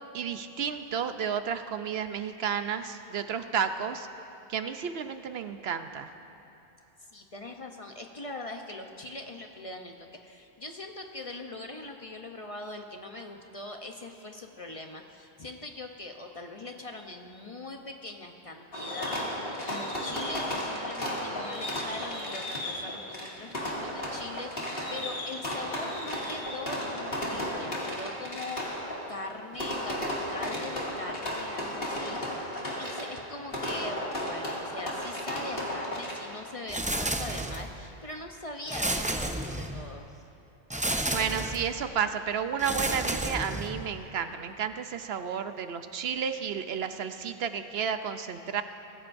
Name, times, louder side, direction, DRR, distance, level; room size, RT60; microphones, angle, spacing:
voice 1, 0.1-4.1 4.5-6.1 41.1-48.6, right 7 dB, 70° right, 9 dB, 0.9 m, -32 dB
voice 2, 7.1-28.7 29.1-40.1, left 2 dB, 35° left, 3 dB, 0.8 m, -41 dB
Fireworks, 18.7-36.5, left 1 dB, 60° left, 2.5 m, -34 dB
sound 1, 36.7-37.8 38.7-39.9 40.7-41.7 42.6-43.9, right 1 dB, 10° right, 0.4 m, -31 dB
24.0 x 15.5 x 2.6 m, 2.8 s
omnidirectional pair, 1.1 m